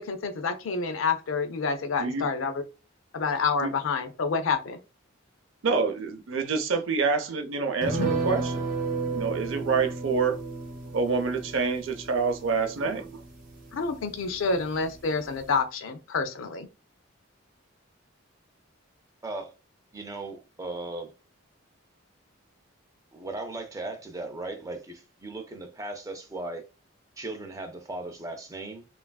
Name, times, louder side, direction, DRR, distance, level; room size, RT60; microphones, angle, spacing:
voice 1, 0.0-2.6 3.1-4.8 13.7-16.7, left 4 dB, 70° left, 0.4 m, -28 dB
voice 2, 5.6-8.7 9.1-10.4 10.9-13.2, right 4 dB, 70° right, 0.5 m, -27 dB
sound 1, 7.8-14.6 14.9-15.0 15.3-15.5, right 3 dB, 45° right, 0.8 m, -33 dB
voice 3, 19.2-19.5 19.9-21.1 23.1-26.6 27.2-28.8, right 2 dB, 15° right, 0.4 m, -37 dB
3.2 x 2.4 x 2.2 m
head